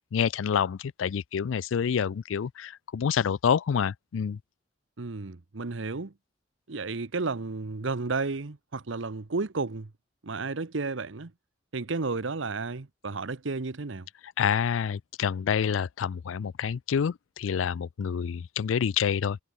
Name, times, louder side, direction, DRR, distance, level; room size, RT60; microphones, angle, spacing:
voice 1, 0.1-4.4 14.4-19.4, left 7 dB, 85° left, 0.4 m, -27 dB
voice 2, 5.0-6.1 6.7-9.9 10.2-11.3 11.7-14.1, right 3 dB, 80° right, 0.9 m, -32 dB
head